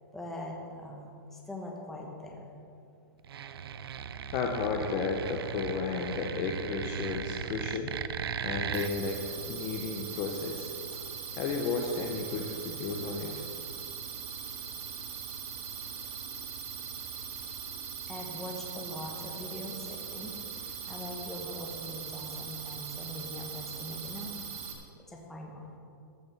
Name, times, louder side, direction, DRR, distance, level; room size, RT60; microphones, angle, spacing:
voice 1, 0.1-1.0 1.3-2.5 18.1-24.3 25.1-25.7, left 1 dB, 5° left, -1 dB, 1.2 m, -42 dB
sound 1, 3.2-8.9, right 7 dB, 85° right, 0.7 m, -37 dB
voice 2, 4.3-7.9 8.4-9.2 9.5-11.0 11.3-13.4, left 4 dB, 25° left, 2 dB, 0.8 m, -33 dB
sound 2, 8.7-24.7, right 7 dB, 35° right, 1.8 m, -40 dB
14.0 x 6.9 x 7.1 m, 2.5 s
hypercardioid pair, 175°, 12 cm